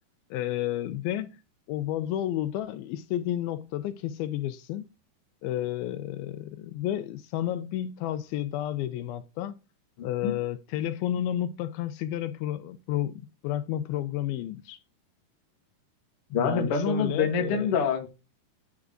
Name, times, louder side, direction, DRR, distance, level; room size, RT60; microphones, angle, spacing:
voice 1, 0.3-1.4 1.7-4.9 5.4-9.5 10.0-14.8 16.4-17.8, left 12 dB, 80° left, 2.3 m, -31 dB
voice 2, 16.3-18.1, left 5 dB, 65° left, 1.4 m, -26 dB
10.0 x 3.5 x 3.6 m
omnidirectional pair, 4.5 m